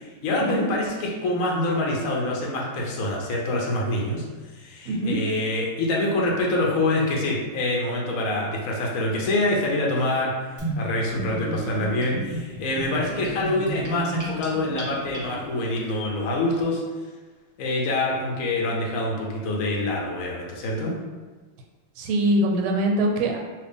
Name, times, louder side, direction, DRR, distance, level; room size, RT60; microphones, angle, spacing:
voice 1, 0.0-4.2 4.5-10.3 10.7-16.8 17.6-21.0, left 2 dB, 75° left, -2 dB, 0.7 m, -25 dB
voice 2, 4.9-5.2 22.0-23.4, right 1 dB, 85° right, 2 dB, 1.4 m, -23 dB
Gurgling / Bathtub (filling or washing), 10.6-15.6, right 2 dB, 10° right, 0.8 m, -33 dB
2.8 x 2.8 x 3.4 m, 1.3 s
omnidirectional pair, 2.2 m